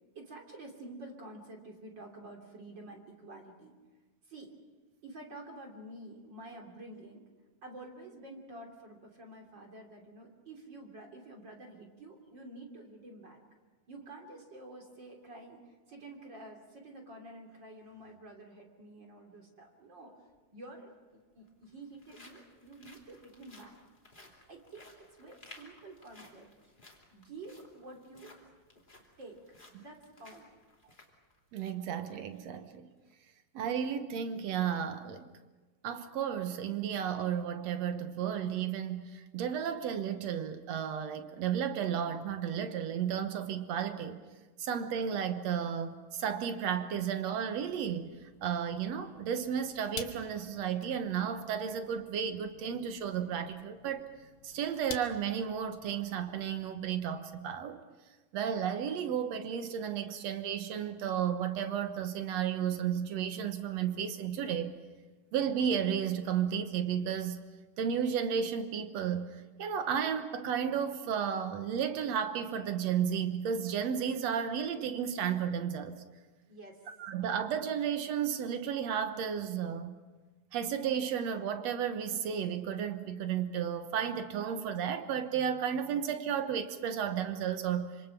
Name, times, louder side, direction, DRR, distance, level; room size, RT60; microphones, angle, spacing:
voice 1, 0.1-3.8 4.2-4.5 5.0-7.2 7.6-13.4 13.9-23.8 24.5-26.5 27.1-28.3 29.2-29.4 29.8-30.5 32.5-32.6 76.5-76.8, right 2 dB, 30° right, 1 dB, 3.2 m, -49 dB
sound 1, 20.3-20.4 21.3-31.9 32.3-32.4 32.9-33.1, left 2 dB, 15° left, 2.5 m, -58 dB
voice 2, 31.5-32.9 33.5-35.3 35.8-44.2 44.6-48.1 48.4-54.1 54.4-57.8 58.3-64.7 65.3-67.4 67.8-76.0 77.0-79.9 80.5-87.9, right 8 dB, 65° right, 8 dB, 1.7 m, -33 dB
sound 2, 46.9-57.4, left 8 dB, 85° left, 3.5 m, -51 dB
26.0 x 26.0 x 6.0 m, 1.3 s
omnidirectional pair, 4.5 m